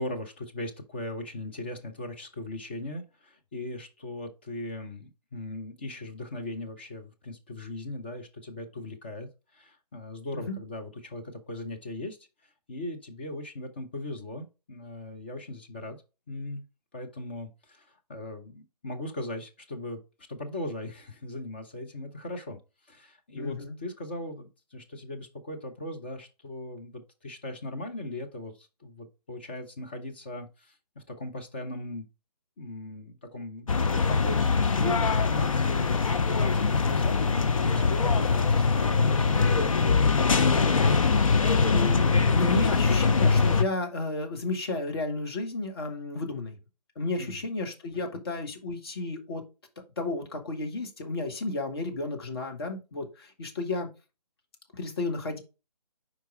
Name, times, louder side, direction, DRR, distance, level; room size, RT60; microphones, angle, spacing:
voice 1, 0.0-9.3 9.5-12.2 12.4-16.0 16.3-16.6 16.9-20.0 20.3-22.6 22.9-32.1 32.6-39.8 47.2-47.4, left 2 dB, 15° left, 4 dB, 0.4 m, -39 dB
voice 2, 23.3-23.8 40.8-46.6 46.9-49.4 50.0-53.9 54.8-55.4, left 2 dB, 40° left, 4 dB, 1.6 m, -32 dB
sound 1, 33.7-43.6, left 4 dB, 55° left, 0.8 m, -23 dB
4.8 x 4.6 x 4.8 m, 0.29 s
figure-of-eight pair, 150°, 20 cm